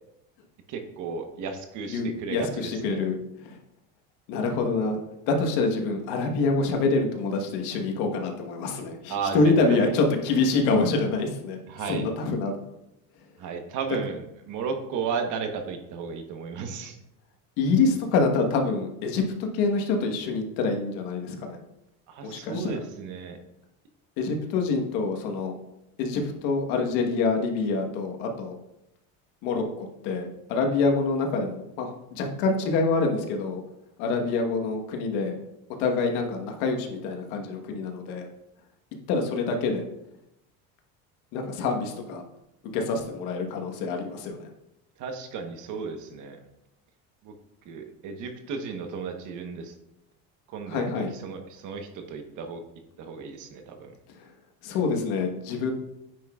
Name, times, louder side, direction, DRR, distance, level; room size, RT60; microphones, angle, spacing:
voice 1, 0.7-3.1 9.1-9.9 11.7-12.1 13.4-17.0 22.1-23.4 45.0-46.4 47.2-47.3 47.6-49.8 50.5-52.6 53.0-53.9, right 5 dB, 55° right, 5 dB, 1.1 m, -34 dB
voice 2, 1.9-3.2 3.4-3.6 4.3-11.6 11.9-12.5 17.6-21.6 22.2-22.7 24.2-25.5 26.0-28.6 29.4-33.6 34.0-35.3 35.8-38.3 39.1-39.8 41.3-42.2 42.7-44.5 50.7-51.1 54.6-55.7, left 3 dB, 85° left, 3 dB, 1.4 m, -26 dB
9.1 x 6.0 x 2.4 m, 0.85 s
cardioid pair, 140°, 35 cm